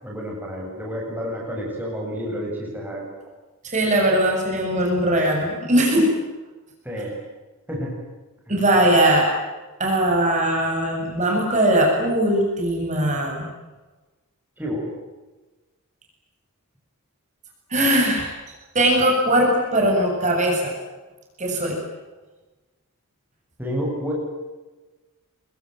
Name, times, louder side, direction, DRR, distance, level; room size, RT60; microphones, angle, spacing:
voice 1, 0.0-3.0 6.8-7.2 7.7-7.9 14.6-14.9 23.6-24.1, equal, 10° right, -2 dB, 8.0 m, -29 dB
voice 2, 3.6-6.0 8.5-9.3 9.8-13.4 17.7-18.3 18.7-20.7 21.4-21.8, right 1 dB, 30° right, 0 dB, 8.0 m, -20 dB
27.5 x 23.0 x 9.4 m, 1.2 s
head